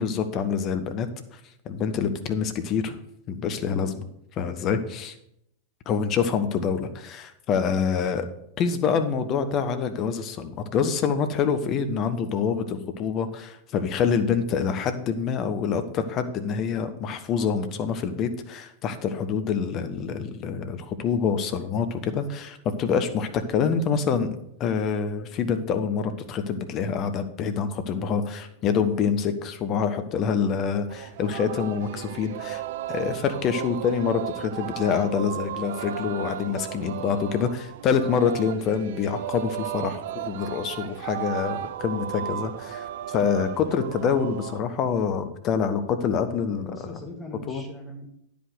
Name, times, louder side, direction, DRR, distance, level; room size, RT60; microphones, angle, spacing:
voice 1, 0.0-1.4 1.6-3.0 3.3-4.0 4.4-5.2 5.9-8.3 8.6-32.6 32.9-46.8 47.5-47.6, left 6 dB, 35° left, 9 dB, 0.9 m, -26 dB
Singing, 30.9-44.6, right 12 dB, 55° right, 0.4 m, -35 dB
voice 2, 46.4-48.1, left 1 dB, 5° left, -1 dB, 2.2 m, -40 dB
9.8 x 5.2 x 6.4 m, 0.77 s
figure-of-eight pair, 90°, 0 cm